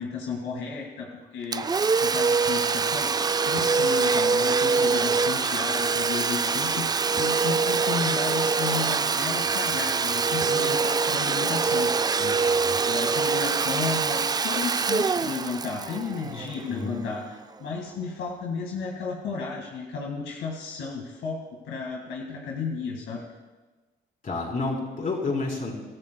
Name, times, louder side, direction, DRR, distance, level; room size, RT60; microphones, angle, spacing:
voice 1, 0.0-1.7 2.0-3.1 3.4-11.9 12.2-23.2, left 5 dB, 85° left, 0 dB, 2.0 m, -33 dB
Domestic sounds home sounds, 1.5-17.0, right 5 dB, 20° right, 0.3 m, -24 dB
voice 2, 16.7-17.0 24.2-25.7, left 3 dB, 45° left, -2 dB, 4.1 m, -29 dB
24.0 x 13.5 x 2.3 m, 1.2 s
cardioid pair, 90°, 20 cm